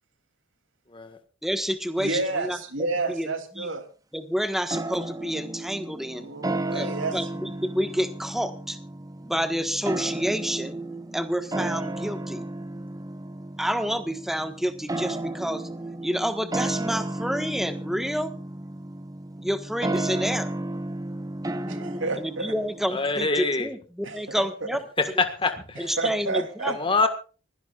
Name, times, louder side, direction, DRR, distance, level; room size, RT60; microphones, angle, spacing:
voice 1, 1.4-2.6 3.1-3.3 3.6-3.7 4.1-6.3 6.7-6.9 7.1-8.8 9.2-10.8 11.1-12.4 13.6-15.6 16.0-18.3 19.4-20.5 22.2-23.8 24.1-24.8 25.8-26.8 27.0-27.1, equal, ahead, 8 dB, 1.4 m, -28 dB
voice 2, 2.0-3.9 6.0-7.2 21.7-22.5 24.0-24.4 26.0-26.8, right 3 dB, 70° right, 7 dB, 3.1 m, -30 dB
sound 1, 4.7-23.2, right 2 dB, 20° right, 0.9 m, -33 dB
voice 3, 22.8-23.7 25.0-26.0 26.7-27.1, left 3 dB, 25° left, 7 dB, 1.6 m, -25 dB
25.0 x 16.5 x 2.5 m, 0.35 s
head